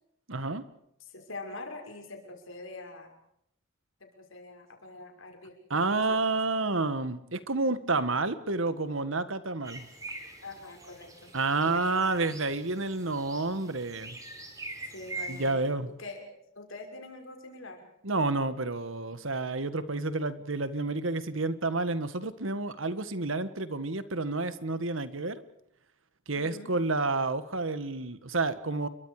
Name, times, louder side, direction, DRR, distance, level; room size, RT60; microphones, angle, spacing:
voice 1, 0.3-0.6 5.7-9.9 11.3-14.2 15.3-15.9 18.0-25.4 26.3-28.9, right 3 dB, 75° right, 13 dB, 1.7 m, -30 dB
voice 2, 1.0-3.2 4.0-6.4 10.4-11.3 11.6-12.0 14.8-15.7 16.0-17.9 26.4-26.8, left 2 dB, 75° left, 3 dB, 6.2 m, -44 dB
sound 1, 9.6-15.5, right 2 dB, 15° right, 4.7 m, -44 dB
30.0 x 23.5 x 5.0 m, 0.74 s
head